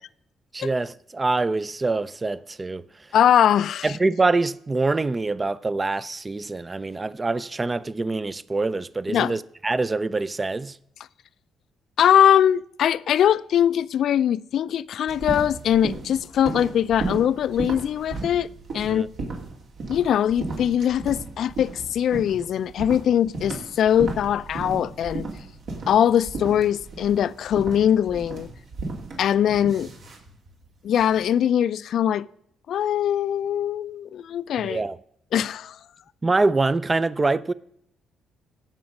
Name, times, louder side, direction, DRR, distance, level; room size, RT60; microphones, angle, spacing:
voice 1, 0.5-2.8 3.8-10.8 18.9-19.1 34.6-35.0 36.2-37.5, right 3 dB, 25° right, 0.4 m, -25 dB
voice 2, 3.1-3.9 9.1-9.4 12.0-18.5 18.7-19.1 19.9-25.3 25.9-28.5 29.2-29.9 30.8-32.3 32.7-34.8 35.3-35.8, left 10 dB, 70° left, 0.4 m, -21 dB
sound 1, 15.1-31.3, right 3 dB, 70° right, 2.6 m, -35 dB
16.5 x 5.9 x 5.3 m
cardioid pair, 90°, 0 cm